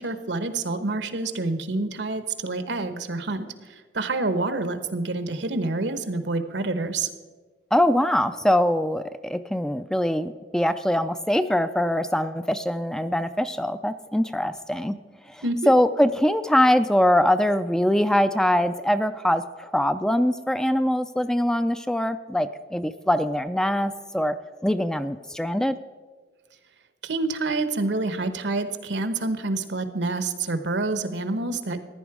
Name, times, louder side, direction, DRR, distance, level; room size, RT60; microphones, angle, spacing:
voice 1, 0.0-7.1 15.4-15.7 27.0-31.8, right 3 dB, 75° right, 10 dB, 1.0 m, -27 dB
voice 2, 7.7-15.0 15.3-24.4 24.6-25.8, left 1 dB, 5° left, 11 dB, 0.3 m, -23 dB
15.0 x 10.5 x 4.8 m, 1.4 s
head